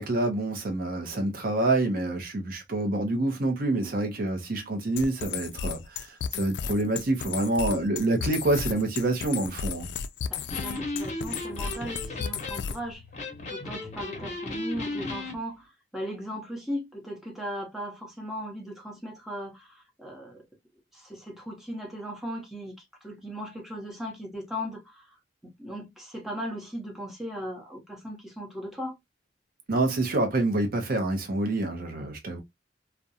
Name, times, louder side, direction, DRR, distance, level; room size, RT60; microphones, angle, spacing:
voice 1, 0.0-9.9 29.7-32.4, right 2 dB, 55° right, 0.6 m, -27 dB
sound 1, 5.0-12.9, left 7 dB, 70° left, 0.3 m, -34 dB
voice 2, 10.3-13.0 13.5-20.5 20.9-22.7 23.0-25.1 25.4-29.0, equal, ahead, 0.9 m, -37 dB
Electric guitar, 10.4-15.4, left 2 dB, 40° left, 0.9 m, -36 dB
2.4 x 2.1 x 2.6 m
head